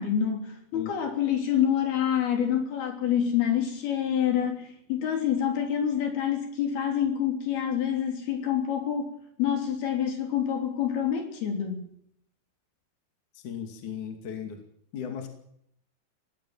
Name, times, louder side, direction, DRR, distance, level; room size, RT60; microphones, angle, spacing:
voice 1, 0.0-9.1 9.4-11.9, left 9 dB, 65° left, 4 dB, 5.2 m, -27 dB
voice 2, 13.3-14.6 14.9-15.3, left 8 dB, 50° left, 4 dB, 3.7 m, -36 dB
23.0 x 18.0 x 7.4 m, 0.70 s
omnidirectional pair, 4.8 m